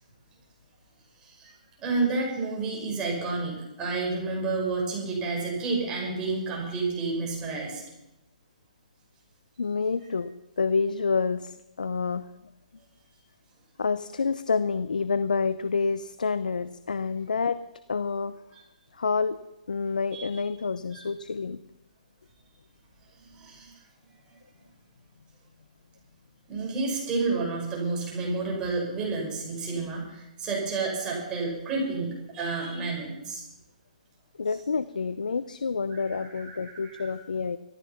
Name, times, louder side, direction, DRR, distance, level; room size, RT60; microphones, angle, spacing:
voice 1, 1.2-7.8 20.1-20.4 20.9-21.1 23.2-23.7 26.5-33.4 35.9-37.1, right 3 dB, 20° right, -2 dB, 5.9 m, -30 dB
voice 2, 9.6-12.3 13.8-17.6 17.9-18.3 18.9-19.4 19.7-21.6 34.4-37.6, left 4 dB, 80° left, 14 dB, 0.6 m, -28 dB
15.0 x 14.0 x 5.8 m, 0.92 s
hypercardioid pair, 140°, 4 cm